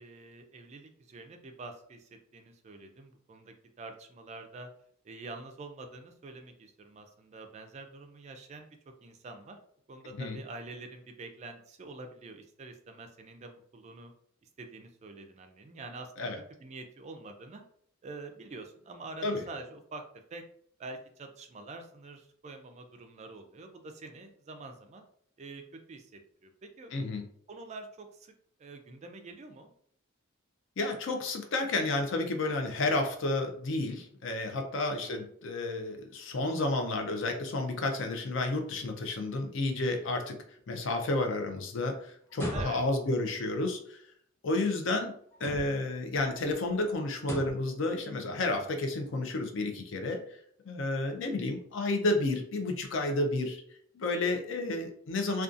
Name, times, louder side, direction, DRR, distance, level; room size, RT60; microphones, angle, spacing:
voice 1, 0.0-4.7 5.0-9.6 9.9-14.1 14.6-16.3 16.6-17.6 18.0-20.0 20.3-20.4 20.8-25.0 25.4-26.9 27.5-28.3 28.6-29.7 34.9-35.3 42.5-42.8 52.6-52.8, right 3 dB, 35° right, 6 dB, 0.3 m, -46 dB
voice 2, 26.9-27.2 30.8-40.4 40.7-44.0 44.4-45.1 45.4-50.2 50.7-53.6 53.9-55.4, left 2 dB, 65° left, 4 dB, 0.5 m, -31 dB
sound 1, 42.3-43.1 45.3-46.0 47.2-47.7, equal, 10° left, 0.6 m, -37 dB
2.5 x 2.3 x 2.4 m, 0.65 s
head